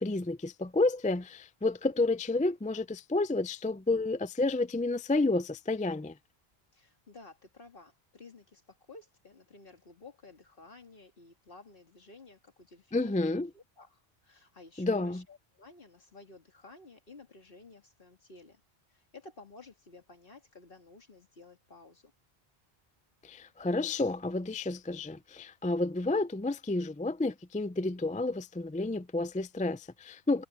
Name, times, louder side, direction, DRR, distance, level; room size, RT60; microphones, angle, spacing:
voice 1, 0.0-6.1 12.9-13.5 14.8-15.2 23.2-30.4, left 2 dB, 10° left, 0.3 m, -30 dB
voice 2, 6.7-18.6 18.9-22.1, left 3 dB, 60° left, 2.4 m, -53 dB
omnidirectional pair, 1.0 m